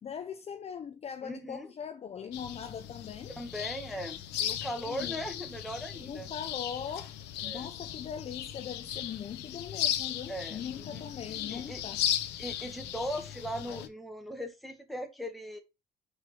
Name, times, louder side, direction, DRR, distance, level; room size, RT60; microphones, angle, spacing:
voice 1, 0.0-3.3 4.8-5.4 6.0-7.1 7.4-12.0, left 7 dB, 40° left, 0.7 m, -41 dB
voice 2, 1.2-1.7 3.4-6.3 7.4-7.7 10.3-10.6 10.9-11.0 11.5-11.8 12.4-15.6, equal, ahead, 1.6 m, -39 dB
sound 1, 2.3-13.9, left 11 dB, 90° left, 0.9 m, -37 dB
5.0 x 4.8 x 4.8 m
cardioid pair, 110°, 17 cm